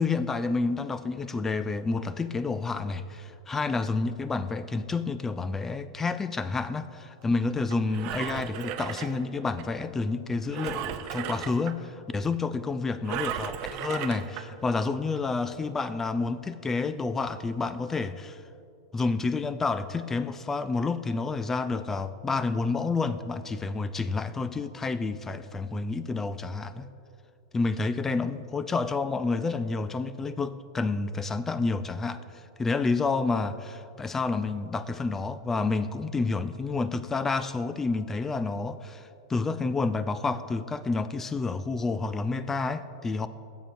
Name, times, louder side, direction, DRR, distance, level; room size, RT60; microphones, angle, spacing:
voice 1, 0.0-18.4 18.9-26.9 27.5-32.2 32.6-43.3, left 3 dB, 15° left, 13 dB, 0.4 m, -29 dB
Engine, 7.7-9.6 10.5-11.7 13.0-14.4 15.1-15.2, right 10 dB, 50° right, 0.5 m, -35 dB
16.0 x 7.6 x 2.7 m, 2.6 s
hypercardioid pair, 105°, 2 cm